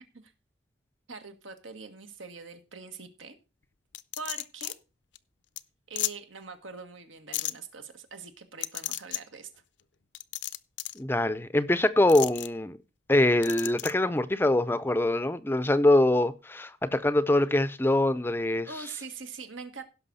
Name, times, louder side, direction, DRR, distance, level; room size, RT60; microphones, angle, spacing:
voice 1, 1.1-3.4 4.2-4.7 5.9-9.5 18.6-19.8, right 4 dB, 90° right, 1.8 m, -43 dB
sound 1, 3.9-4.7 5.2-5.3 5.6-5.7 6.0-6.1 7.3-7.5 8.6-9.2 10.1-11.0 12.1-12.5 13.4-13.9, left 15 dB, 65° left, 0.5 m, -33 dB
voice 2, 11.0-12.8 13.1-18.7, left 1 dB, 10° left, 0.4 m, -24 dB
16.5 x 6.0 x 4.1 m
head